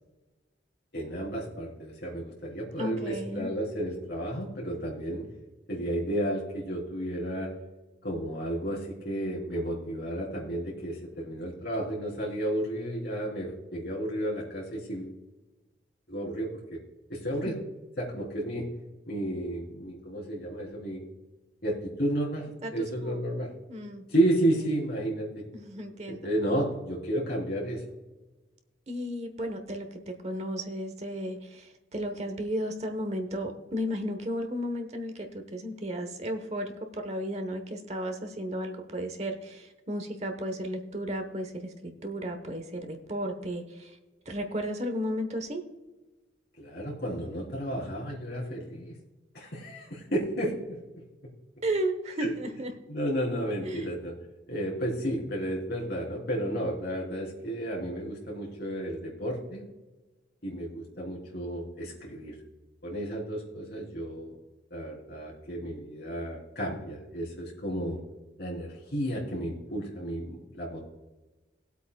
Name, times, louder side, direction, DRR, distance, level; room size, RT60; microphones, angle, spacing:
voice 1, 0.9-5.3 5.7-7.5 8.0-15.1 16.1-16.8 17.1-17.6 18.0-18.7 19.1-21.1 21.6-23.5 24.1-25.5 26.1-27.8 46.6-49.0 49.3-50.8 51.2-51.3 52.2-52.3 52.9-54.1 54.5-59.6 60.4-62.4 62.8-64.4 64.7-68.0 68.4-70.8, right 1 dB, 55° left, -3 dB, 3.6 m, -32 dB
voice 2, 2.8-3.5 17.4-17.6 22.6-23.2 23.7-24.0 25.5-26.3 28.9-29.9 30.2-44.0 44.2-45.6 51.6-52.7 53.6-53.9, equal, 35° right, 5 dB, 1.1 m, -34 dB
19.5 x 8.2 x 2.3 m, 1.1 s
head